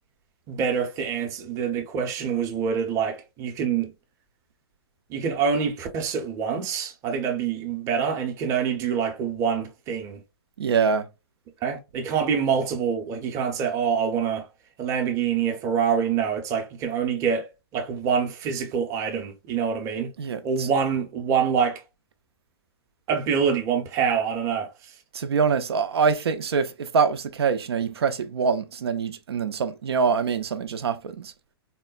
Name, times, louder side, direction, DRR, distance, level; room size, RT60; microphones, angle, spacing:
voice 1, 0.5-3.9 5.1-10.2 11.6-14.5 14.8-20.1 20.4-21.8 23.1-24.7, right 7 dB, 25° right, 0.6 m, -26 dB
voice 2, 10.6-11.1 20.2-20.7 25.1-31.3, right 5 dB, 80° right, 0.5 m, -24 dB
3.6 x 2.1 x 2.3 m
hypercardioid pair, 145°, 13 cm